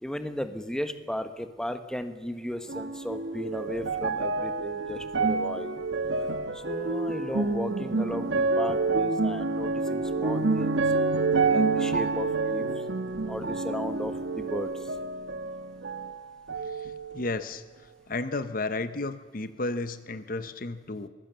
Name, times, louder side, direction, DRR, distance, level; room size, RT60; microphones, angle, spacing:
voice 1, 0.0-5.7 6.5-10.8 11.4-12.7 13.3-14.7, equal, 5° left, 9 dB, 1.2 m, -35 dB
sound 1, 2.7-16.2 16.5-17.4 18.1-18.2, right 3 dB, 90° right, 1.5 m, -28 dB
voice 2, 17.1-17.6 18.1-21.1, left 2 dB, 50° left, 12 dB, 1.0 m, -32 dB
23.5 x 19.0 x 6.9 m, 1.4 s
head